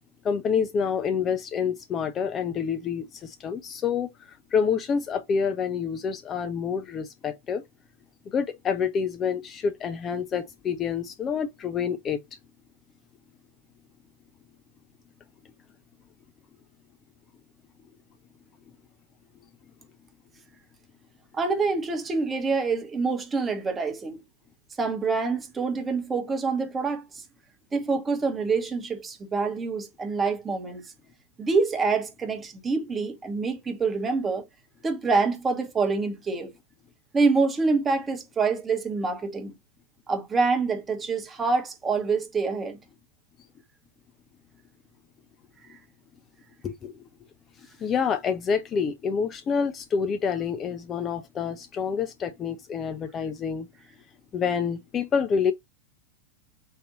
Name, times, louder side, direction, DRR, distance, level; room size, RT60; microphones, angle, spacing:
voice 1, 0.2-7.6 8.3-12.2 46.6-47.0 47.6-53.7 54.3-55.5, left 6 dB, 25° left, 0.4 m, -27 dB
voice 2, 21.3-24.2 24.8-27.2 27.7-30.8 31.4-34.4 34.8-36.5 37.1-39.5 40.1-42.8, right 4 dB, 20° right, 1.0 m, -26 dB
4.0 x 2.6 x 3.8 m
figure-of-eight pair, 90°, 0 cm